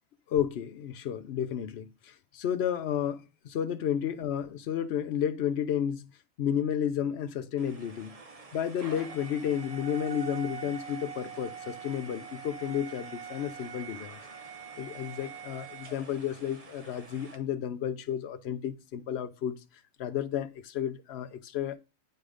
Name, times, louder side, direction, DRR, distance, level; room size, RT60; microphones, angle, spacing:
voice 1, 0.3-6.1 6.4-8.2 8.5-14.2 14.8-19.6 20.0-21.8, left 9 dB, 60° left, 0.9 m, -32 dB
sound 1, 7.6-17.4, right 6 dB, 30° right, 0.8 m, -44 dB
9.3 x 3.8 x 4.9 m
omnidirectional pair, 1.4 m